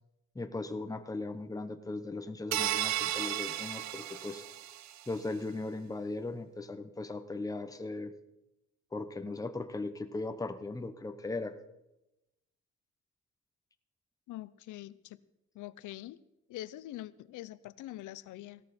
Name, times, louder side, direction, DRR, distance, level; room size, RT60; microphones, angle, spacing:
voice 1, 0.3-4.4 5.1-8.1 8.9-11.5, left 2 dB, 10° left, 8 dB, 1.0 m, -38 dB
sound 1, 2.5-5.0, right 12 dB, 65° right, 0.7 m, -34 dB
voice 2, 14.3-15.2 15.5-16.2 16.5-18.6, left 15 dB, 80° left, 17 dB, 0.7 m, -44 dB
17.0 x 13.0 x 4.3 m, 0.91 s
cardioid pair, 90°, 30 cm